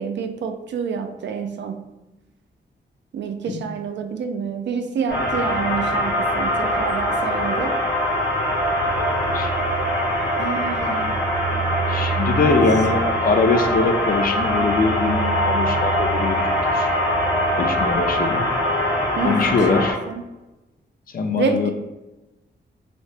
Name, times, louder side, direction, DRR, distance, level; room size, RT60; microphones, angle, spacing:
voice 1, 0.0-1.9 3.1-7.8 10.4-11.2 11.5-11.6 12.4-12.6 19.2-20.2 21.4-21.7, right 6 dB, 70° right, 6 dB, 0.4 m, -28 dB
sound 1, 5.1-19.9, equal, 75° left, 0.9 m, -22 dB
voice 2, 8.9-9.5 11.9-16.9 17.6-18.5 19.2-20.0 21.1-21.7, left 4 dB, 50° left, 5 dB, 0.4 m, -22 dB
2.8 x 2.7 x 3.3 m, 1.0 s
wide cardioid pair, 110°, 19 cm